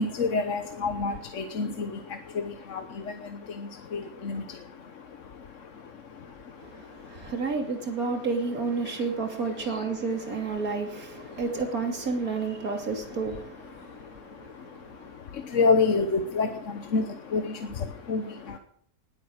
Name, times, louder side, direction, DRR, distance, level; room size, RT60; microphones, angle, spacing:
voice 1, 0.0-7.5 8.8-9.1 9.5-9.9 10.2-10.7 11.2-11.5 13.6-18.6, left 4 dB, 55° left, 1.3 m, -30 dB
voice 2, 6.6-15.1, right 4 dB, 65° right, 3.3 m, -31 dB
20.0 x 8.9 x 6.5 m
omnidirectional pair, 1.6 m